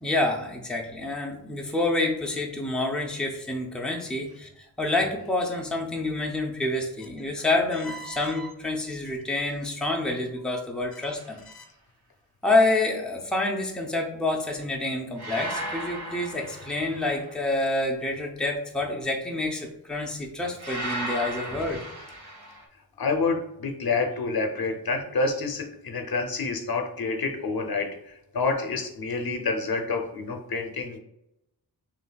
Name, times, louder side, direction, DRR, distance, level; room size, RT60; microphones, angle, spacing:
voice 1, 0.0-11.4 12.4-21.8, left 2 dB, ahead, 0 dB, 0.6 m, -28 dB
sound 1, 11.0-11.4 15.2-17.3 20.6-22.6, right 1 dB, 65° right, 1.2 m, -35 dB
voice 2, 23.0-31.0, left 4 dB, 65° left, 4 dB, 0.7 m, -28 dB
6.7 x 2.6 x 2.3 m, 0.84 s
wide cardioid pair, 120°, 40 cm